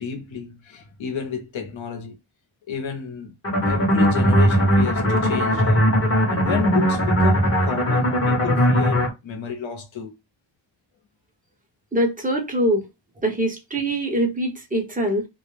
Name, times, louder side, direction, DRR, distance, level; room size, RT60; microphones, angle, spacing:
voice 1, 0.0-2.2 2.7-3.3 3.6-5.9 6.3-10.1, left 6 dB, 85° left, 0.8 m, -31 dB
sound 1, 3.4-9.1, equal, 30° left, 0.9 m, -19 dB
voice 2, 11.9-12.9 13.2-15.3, right 1 dB, 20° right, 0.8 m, -23 dB
2.3 x 2.0 x 3.1 m
wide cardioid pair, 95°, 46 cm